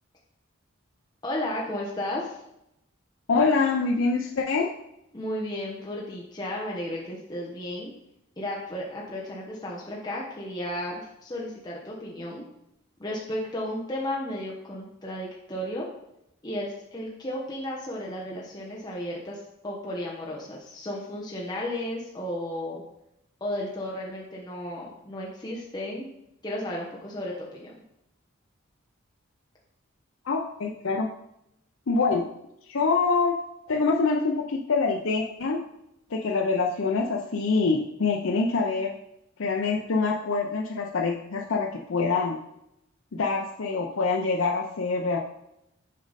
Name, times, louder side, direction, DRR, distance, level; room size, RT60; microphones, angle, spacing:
voice 1, 1.2-2.4 5.1-7.9 8.4-12.4 13.0-15.9 16.4-22.8 23.4-26.1 26.4-27.7, left 1 dB, 20° left, -4 dB, 1.0 m, -34 dB
voice 2, 3.3-4.7 30.2-31.1 31.9-32.3 32.7-33.3 33.7-35.6 36.1-38.9 39.4-42.4 43.1-45.2, left 4 dB, 70° left, 1 dB, 0.6 m, -25 dB
6.4 x 5.2 x 4.1 m, 0.82 s
head